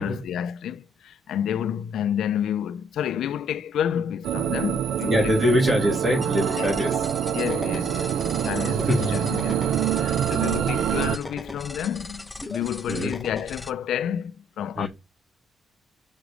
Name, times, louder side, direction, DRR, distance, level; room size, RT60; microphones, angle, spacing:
voice 1, 0.0-5.3 6.5-6.8 7.3-14.9, left 9 dB, 70° left, 0.4 m, -30 dB
sound 1, 4.2-11.2, right 9 dB, 80° right, 0.4 m, -26 dB
voice 2, 5.1-7.0 8.9-9.1 12.9-13.1 14.8-14.9, equal, 20° right, 2.5 m, -23 dB
sound 2, 5.2-6.5 8.3-8.4 9.4-10.7 12.5-12.6 13.1-13.2, right 2 dB, 45° right, 1.4 m, -45 dB
sound 3, 6.2-13.7, left 2 dB, 10° left, 0.6 m, -38 dB
7.2 x 5.0 x 5.0 m
wide cardioid pair, 180°, 0 cm